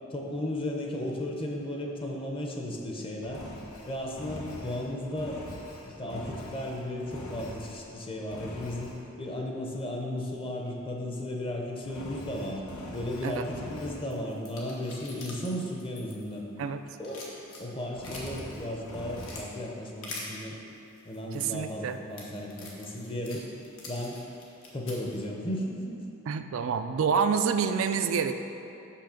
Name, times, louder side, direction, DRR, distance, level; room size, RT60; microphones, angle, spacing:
voice 1, 0.1-3.4 3.9-5.4 5.9-12.6 12.9-16.4 17.0-20.6 21.0-23.5 23.9-24.2 24.7-26.0, left 1 dB, 25° left, 0 dB, 0.8 m, -35 dB
Engine, 3.2-7.9 8.3-9.0 11.8-14.1 17.9-19.5, left 1 dB, 85° left, 1.0 m, -43 dB
sound 1, 14.1-16.6 16.9-18.4 18.8-19.4 20.0-20.3 21.0-25.2, left 3 dB, 70° left, 1.3 m, -44 dB
voice 2, 21.3-22.0 26.3-28.3, right 6 dB, 65° right, 9 dB, 0.3 m, -27 dB
6.3 x 5.7 x 5.1 m, 3.0 s
head